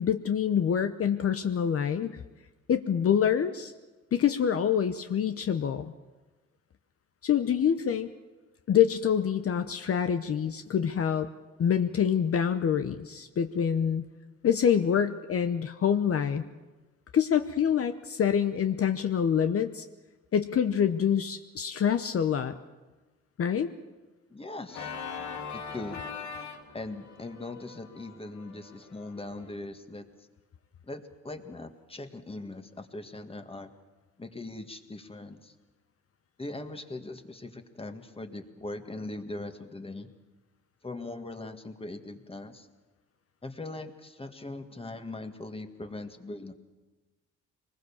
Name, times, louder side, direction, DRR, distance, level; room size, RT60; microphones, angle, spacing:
voice 1, 0.0-2.2 2.7-3.7 4.1-5.9 7.2-8.1 8.7-11.3 11.6-14.0 14.4-16.4 17.1-19.8 20.3-22.5 23.4-23.7, left 8 dB, 50° left, 8 dB, 0.9 m, -26 dB
voice 2, 24.3-24.9 25.5-26.0 26.7-30.3 30.9-33.7 34.2-35.5 36.4-40.1 40.8-42.7 43.4-46.5, left 2 dB, 20° left, 6 dB, 1.8 m, -40 dB
Organ, 24.7-29.5, left 6 dB, 70° left, 2.3 m, -41 dB
23.5 x 20.0 x 7.2 m, 1.2 s
cardioid pair, 90°, 30 cm